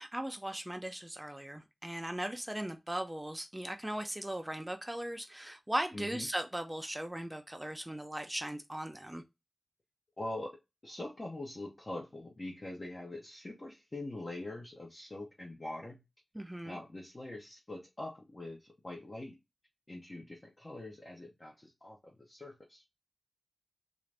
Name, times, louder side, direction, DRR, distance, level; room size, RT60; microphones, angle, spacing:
voice 1, 0.0-9.2 16.3-16.8, right 1 dB, 10° right, 0.4 m, -38 dB
voice 2, 5.9-6.3 10.2-16.0 16.6-19.4 19.9-22.8, left 2 dB, 35° left, 0.7 m, -43 dB
3.8 x 2.5 x 3.3 m
wide cardioid pair, 100°, 0 cm